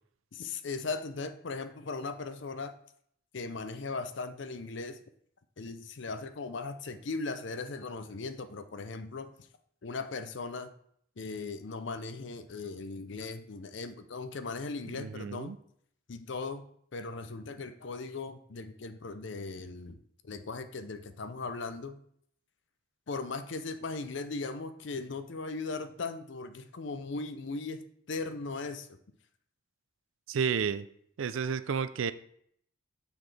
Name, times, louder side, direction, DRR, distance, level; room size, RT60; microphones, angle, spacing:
voice 1, 0.3-2.8 3.3-5.0 5.6-9.3 9.8-10.7 11.2-15.6 16.1-16.7 16.9-20.0 20.2-22.0 23.1-28.9, left 3 dB, 60° left, 10 dB, 0.6 m, -38 dB
voice 2, 14.9-15.6 30.3-30.9 31.2-32.1, right 6 dB, 75° right, 13 dB, 0.4 m, -31 dB
7.0 x 5.9 x 3.3 m, 0.66 s
head